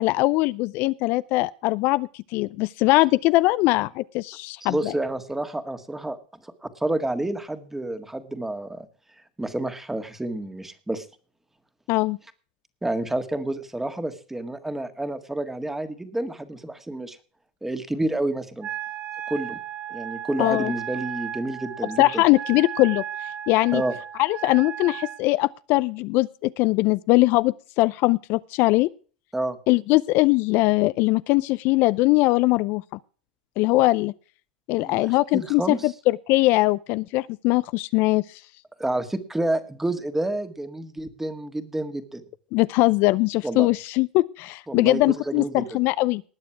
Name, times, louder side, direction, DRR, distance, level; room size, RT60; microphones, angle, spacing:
voice 1, 0.0-4.9 11.9-12.2 20.4-20.7 22.0-23.0 23.5-23.8 24.2-28.9 29.7-32.8 33.6-34.1 34.7-38.4 42.5-46.2, left 20 dB, 55° left, 17 dB, 0.5 m, -21 dB
voice 2, 4.6-6.2 6.4-8.9 9.4-11.1 12.8-17.2 17.6-18.7 19.3-19.6 19.9-22.2 23.7-23.9 29.3-29.6 34.7-35.9 38.8-42.2 43.4-43.7 44.7-45.8, right 1 dB, 5° right, 10 dB, 1.8 m, -29 dB
Wind instrument woodwind instrument, 18.6-25.2, right 10 dB, 35° right, 2.1 m, -35 dB
19.5 x 7.0 x 4.6 m, 0.40 s
supercardioid pair, 115°, 4 cm